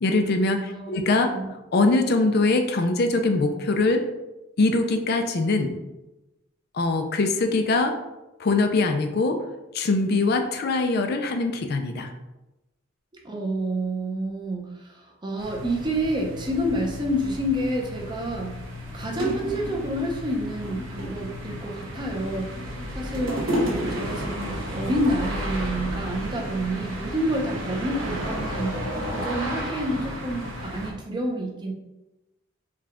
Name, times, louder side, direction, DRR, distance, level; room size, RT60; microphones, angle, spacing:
voice 1, 0.0-1.3 1.7-4.0 4.6-5.8 6.7-7.9 8.4-9.4 9.7-12.1, left 3 dB, 50° left, 5 dB, 0.4 m, -22 dB
voice 2, 0.7-1.5 13.2-18.5 18.9-23.4 23.7-28.8 29.1-31.7, right 1 dB, 20° right, 0 dB, 0.6 m, -29 dB
sound 1, 15.4-30.9, equal, 60° right, 0.9 m, -34 dB
sound 2, 18.0-18.1 18.8-18.9 19.2-20.0 20.5-21.3 22.0-22.6 22.8-24.5 25.2-25.3, equal, 80° right, 1.5 m, -29 dB
4.7 x 2.3 x 3.5 m, 1.0 s
head